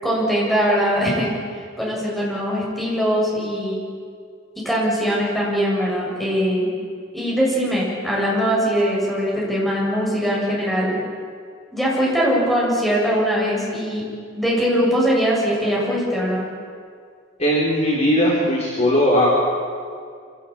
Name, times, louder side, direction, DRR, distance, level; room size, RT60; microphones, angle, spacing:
voice 1, 0.0-3.8 4.6-6.7 7.1-11.0 11.7-14.0 14.3-16.5, equal, ahead, -5 dB, 7.5 m, -21 dB
voice 2, 17.4-19.3, equal, 30° left, -4 dB, 4.3 m, -18 dB
26.0 x 17.5 x 8.8 m, 2.2 s
head